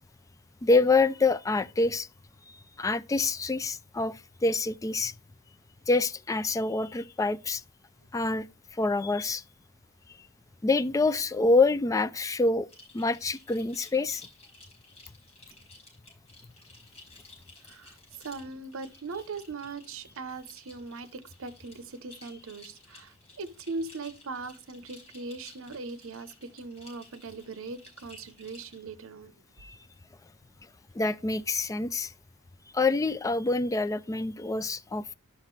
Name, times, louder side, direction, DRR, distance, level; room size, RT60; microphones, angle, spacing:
voice 1, 0.6-2.1 2.5-5.1 5.9-7.6 8.1-8.5 8.7-9.4 10.1-10.2 10.6-12.7 12.9-14.3 29.6-29.8 30.9-32.1 32.7-35.1, left 3 dB, 15° left, 0.3 m, -26 dB
sound 1, 12.7-28.8, left 2 dB, 30° left, 5.3 m, -54 dB
voice 2, 17.6-29.3, right 3 dB, 65° right, 0.8 m, -40 dB
11.5 x 5.7 x 3.2 m
head